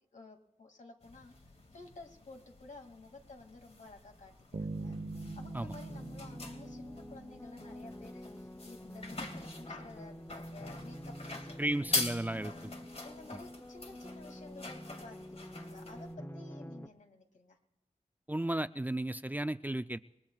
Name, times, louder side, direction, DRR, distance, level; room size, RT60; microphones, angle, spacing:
voice 1, 0.1-1.3 1.7-5.0 5.4-11.7 12.4-12.7 13.0-17.6, left 3 dB, 65° left, 3 dB, 2.5 m, -53 dB
sound 1, 1.0-16.1, left 2 dB, 50° left, 2.4 m, -44 dB
Bass guitar, 4.5-7.6, right 3 dB, 65° right, 1.2 m, -43 dB
sound 2, 4.8-16.9, equal, 15° left, 0.9 m, -47 dB
voice 2, 11.6-12.5 18.3-20.0, right 1 dB, 15° right, 13 dB, 0.4 m, -34 dB
28.5 x 21.0 x 2.4 m, 0.99 s
wide cardioid pair, 60°, 14 cm